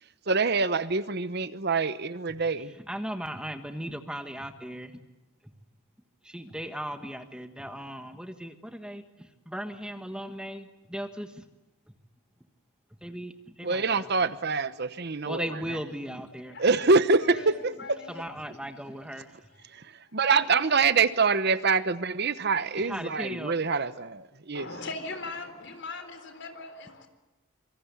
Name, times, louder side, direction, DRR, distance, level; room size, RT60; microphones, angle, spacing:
voice 1, 0.3-2.7 13.6-15.6 16.6-18.0 19.7-19.8 20.1-24.7, right 4 dB, 50° right, 1.0 m, -25 dB
voice 2, 2.8-5.0 6.2-11.4 13.0-14.3 15.2-16.6 18.1-19.3 22.8-23.6, equal, 5° right, 1.4 m, -37 dB
voice 3, 16.5-18.6 24.5-27.1, left 3 dB, 55° left, 3.9 m, -41 dB
26.5 x 24.5 x 8.4 m
head